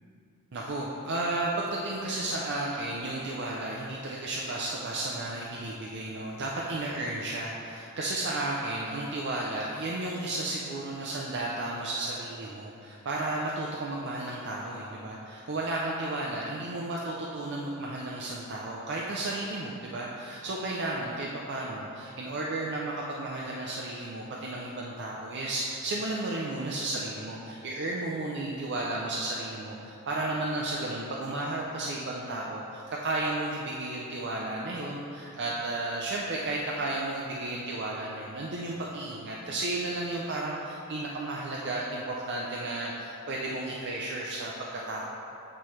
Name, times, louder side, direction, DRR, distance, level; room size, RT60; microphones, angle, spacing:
voice 1, 0.5-45.0, right 2 dB, 50° right, -3 dB, 0.5 m, -33 dB
8.2 x 4.3 x 3.2 m, 2.7 s
head